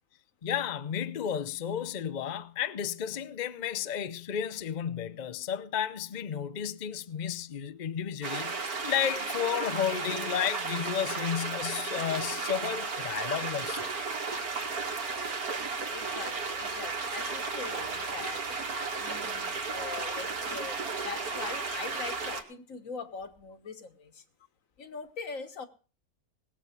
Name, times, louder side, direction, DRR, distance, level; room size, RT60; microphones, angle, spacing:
voice 1, 0.4-13.9, left 8 dB, 45° left, 0.6 m, -32 dB
sound 1, 8.2-22.4, right 4 dB, 75° right, 2.5 m, -34 dB
voice 2, 15.9-18.6 19.0-24.2 24.8-25.7, left 5 dB, 60° left, 1.7 m, -42 dB
20.0 x 7.5 x 5.8 m
omnidirectional pair, 1.6 m